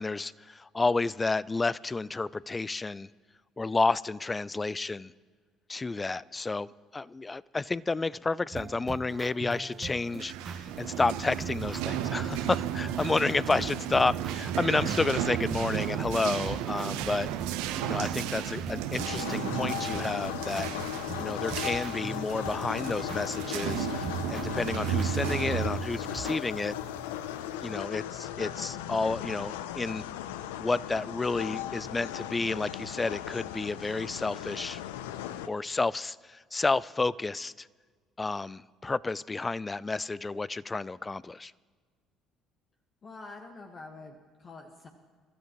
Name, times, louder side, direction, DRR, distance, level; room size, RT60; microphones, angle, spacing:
voice 1, 0.0-3.1 3.6-5.1 5.7-6.7 6.9-17.3 17.8-20.7 21.2-26.8 27.6-30.0 30.6-34.8 35.5-37.7 38.2-41.5, left 3 dB, 25° left, 21 dB, 0.3 m, -30 dB
sound 1, 8.5-26.4, right 6 dB, 45° right, 0.9 m, -42 dB
sound 2, 10.0-27.4, right 10 dB, 75° right, 0.7 m, -34 dB
sound 3, 19.0-35.5, left 11 dB, 80° left, 0.5 m, -37 dB
voice 2, 43.0-44.9, left 3 dB, 40° left, 2 dB, 1.4 m, -46 dB
24.0 x 13.0 x 3.0 m, 1.5 s
hypercardioid pair, 60°, 0 cm